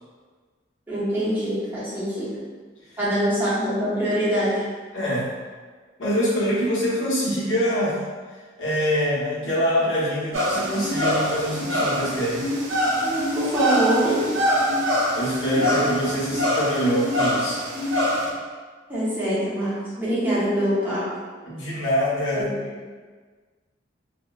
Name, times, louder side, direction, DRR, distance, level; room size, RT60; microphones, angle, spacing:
voice 1, 0.9-2.4 3.0-4.6 13.0-14.3 18.9-21.1 22.3-22.5, equal, 10° right, -10 dB, 0.8 m, -24 dB
voice 2, 4.9-5.3 6.0-8.0 8.6-12.4 15.1-17.6 21.5-22.5, equal, 70° left, -6 dB, 0.7 m, -24 dB
sound 1, 10.3-18.3, equal, 80° right, 0.5 m, -24 dB
2.9 x 2.1 x 2.3 m, 1.4 s
head